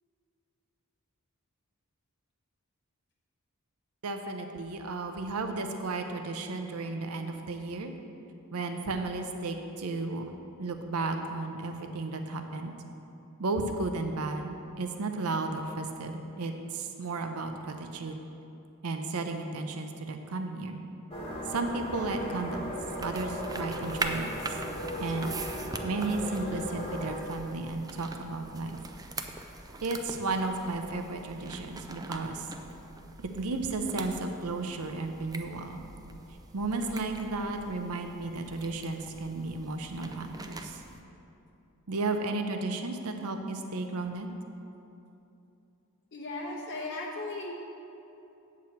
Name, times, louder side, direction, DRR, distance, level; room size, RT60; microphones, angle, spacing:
voice 1, 4.0-7.9 8.5-10.3 10.6-12.7 13.4-18.2 18.8-20.8 21.5-24.6 25.0-25.3 25.8-28.8 29.8-32.5 33.2-35.8 36.5-40.8 41.9-44.3, right 3 dB, 75° right, 6 dB, 0.6 m, -34 dB
sound 1, 21.1-27.2, equal, 25° left, 1.5 m, -37 dB
sound 2, 22.9-41.0, right 3 dB, 15° right, 0.4 m, -42 dB
voice 2, 46.1-47.5, left 2 dB, 55° left, -2 dB, 0.8 m, -36 dB
8.2 x 4.8 x 7.0 m, 2.9 s
head